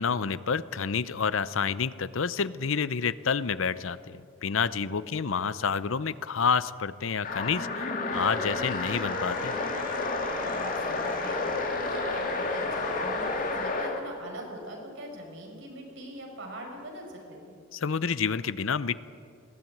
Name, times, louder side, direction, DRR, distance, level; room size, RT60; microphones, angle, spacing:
voice 1, 0.0-9.6 17.7-19.0, left 6 dB, 70° left, 16 dB, 0.6 m, -29 dB
voice 2, 4.7-5.4 10.5-17.6, right 1 dB, 65° right, 1 dB, 5.4 m, -42 dB
sound 1, 7.2-14.0, left 3 dB, 40° left, 2.2 m, -30 dB
sound 2, 8.1-13.7, right 1 dB, 40° right, 2.3 m, -43 dB
21.5 x 16.5 x 9.1 m, 2.4 s
head